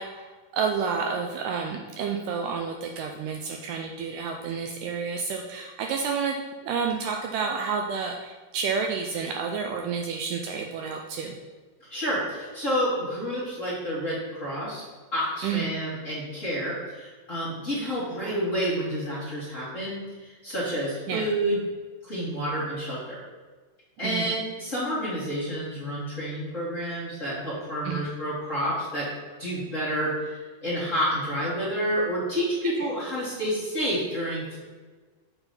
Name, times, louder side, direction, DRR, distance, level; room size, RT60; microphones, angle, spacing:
voice 1, 0.0-6.4 6.6-11.4 15.4-15.7 21.1-21.3 24.0-24.4 27.9-28.0, right 6 dB, 80° right, 2 dB, 2.0 m, -30 dB
voice 2, 11.9-14.8 15.1-21.6 22.0-23.2 24.0-29.0 29.4-34.6, equal, 25° left, -8 dB, 2.0 m, -29 dB
7.1 x 4.0 x 5.3 m, 1.4 s
omnidirectional pair, 4.0 m